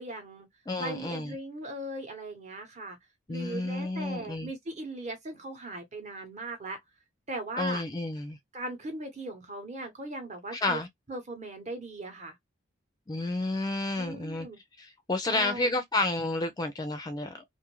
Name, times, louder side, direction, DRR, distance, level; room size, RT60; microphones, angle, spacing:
voice 1, 0.0-0.5 0.8-3.0 3.3-6.8 7.3-7.8 8.5-10.8 11.1-12.4 14.0-14.6 15.3-15.7, right 2 dB, 35° right, 0.9 m, -38 dB
voice 2, 0.7-1.4 3.3-4.5 7.6-8.4 10.6-10.9 13.1-14.5 14.8-17.4, left 2 dB, 20° left, 0.4 m, -31 dB
2.6 x 2.4 x 2.9 m
head